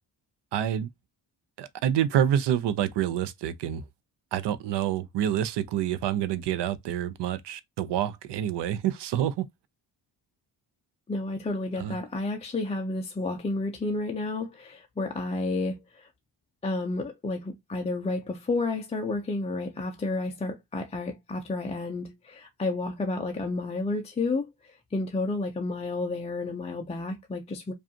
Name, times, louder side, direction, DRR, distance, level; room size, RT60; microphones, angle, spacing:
voice 1, 0.5-0.9 1.6-3.8 4.3-9.4 11.8-12.0, right 10 dB, 80° right, 0.6 m, -27 dB
voice 2, 11.1-16.1 16.6-27.7, left 2 dB, 15° left, 0.3 m, -31 dB
5.0 x 2.4 x 2.7 m
wide cardioid pair, 175°, 41 cm